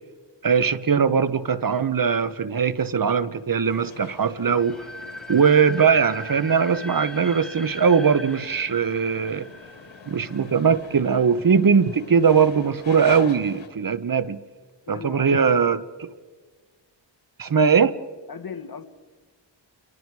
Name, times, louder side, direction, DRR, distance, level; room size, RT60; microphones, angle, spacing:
voice 1, 0.4-4.8 5.3-9.5 10.1-14.4 14.9-16.1 17.4-18.0, right 6 dB, 45° right, 15 dB, 1.0 m, -20 dB
sound 1, 3.6-13.7, left 5 dB, 85° left, 2.4 m, -44 dB
sound 2, 4.5-11.4, left 1 dB, ahead, 2.0 m, -40 dB
voice 2, 14.9-15.7 18.3-18.8, left 6 dB, 50° left, 9 dB, 1.7 m, -37 dB
29.5 x 23.0 x 4.8 m, 1.4 s
cardioid pair, 75°, 45 cm